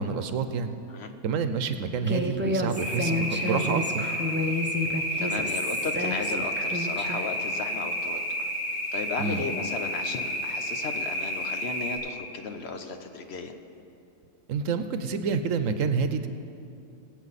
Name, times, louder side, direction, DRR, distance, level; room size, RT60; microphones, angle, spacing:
voice 1, 0.0-0.7 1.2-4.0 9.2-9.4 14.5-16.3, right 5 dB, 80° right, 10 dB, 1.1 m, -28 dB
Human voice, 2.1-7.3, left 1 dB, 15° right, 0.5 m, -30 dB
sound 1, 2.8-12.0, equal, 90° left, 3.6 m, -31 dB
voice 2, 5.2-8.5 8.9-13.6, left 4 dB, 55° left, 6 dB, 1.0 m, -35 dB
22.0 x 8.3 x 4.1 m, 2.7 s
omnidirectional pair, 1.4 m